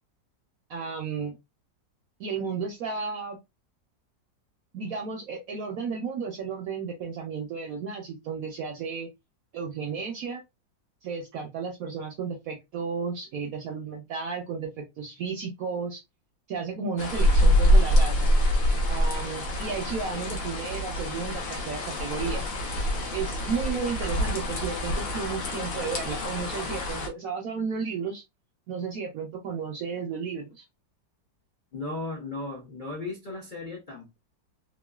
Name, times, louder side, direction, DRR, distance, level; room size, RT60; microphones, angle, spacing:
voice 1, 0.7-1.4 2.2-3.4 4.7-9.1 9.5-10.4 11.0-16.0 16.5-18.3 18.9-22.5 23.1-28.2 28.7-30.6, right 5 dB, 70° right, 0.8 m, -33 dB
sound 1, 17.0-27.1, equal, 85° left, 1.5 m, -25 dB
voice 2, 31.7-34.2, left 2 dB, 65° left, 0.4 m, -36 dB
3.7 x 2.0 x 2.3 m
omnidirectional pair, 2.0 m